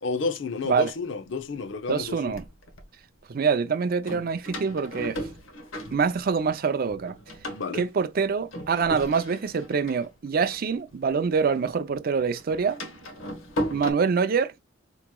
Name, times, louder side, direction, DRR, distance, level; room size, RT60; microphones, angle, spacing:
voice 1, 0.0-2.3 7.5-7.9, left 4 dB, 65° left, 0.6 m, -31 dB
Door, 1.7-2.8 4.0-6.6 6.9-11.4 11.7-13.9, equal, 85° left, 1.1 m, -37 dB
voice 2, 1.9-2.4 3.3-5.2 5.9-7.2 7.7-12.8 13.7-14.5, right 5 dB, 45° right, 0.4 m, -25 dB
4.6 x 3.0 x 2.2 m
head